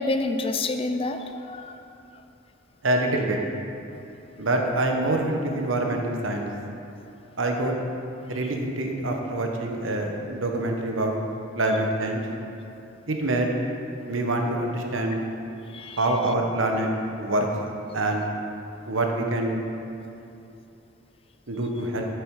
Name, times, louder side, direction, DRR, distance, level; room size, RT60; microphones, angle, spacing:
voice 1, 0.0-1.8 15.7-16.0, left 2 dB, 30° left, 7 dB, 0.4 m, -28 dB
voice 2, 2.8-3.4 4.4-6.5 7.4-7.7 8.3-11.2 11.6-12.2 13.1-13.5 14.1-15.2 16.0-16.9 17.2-17.5 17.9-18.2 18.9-19.6 21.5-22.1, right 2 dB, 85° right, 2 dB, 1.1 m, -25 dB
8.2 x 7.0 x 4.8 m, 2.8 s
head